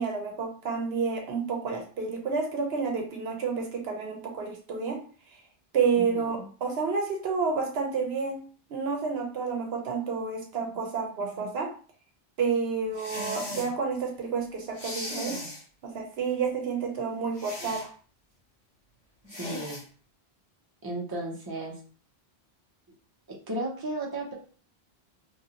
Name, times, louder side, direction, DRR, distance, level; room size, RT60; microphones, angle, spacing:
voice 1, 0.0-5.0 5.7-8.4 8.7-11.7 12.4-15.4 15.8-17.9, right 5 dB, 75° right, 2 dB, 0.9 m, -30 dB
voice 2, 6.0-6.5 19.4-19.8 20.8-21.7 23.5-24.3, right 2 dB, 25° right, -2 dB, 0.7 m, -34 dB
sound 1, 12.9-13.7 14.7-15.6 17.4-17.9 19.3-19.8, left 1 dB, 75° left, 1.3 m, -37 dB
2.9 x 2.6 x 2.8 m, 0.41 s
omnidirectional pair, 1.1 m